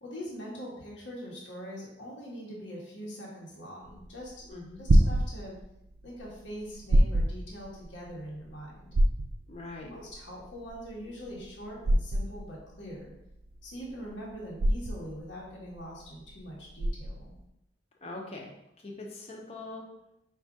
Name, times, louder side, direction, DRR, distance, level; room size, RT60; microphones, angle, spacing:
voice 1, 0.0-4.4 4.8-5.6 6.0-8.9 9.8-13.1 13.6-17.3, equal, 90° left, -4 dB, 1.2 m, -43 dB
sound 1, 3.8-17.4, right 1 dB, 55° right, 0.4 m, -27 dB
voice 2, 4.5-4.8 9.5-9.9 18.0-18.5 18.8-19.9, left 2 dB, 35° left, 0 dB, 0.7 m, -42 dB
4.8 x 2.6 x 3.6 m, 0.82 s
head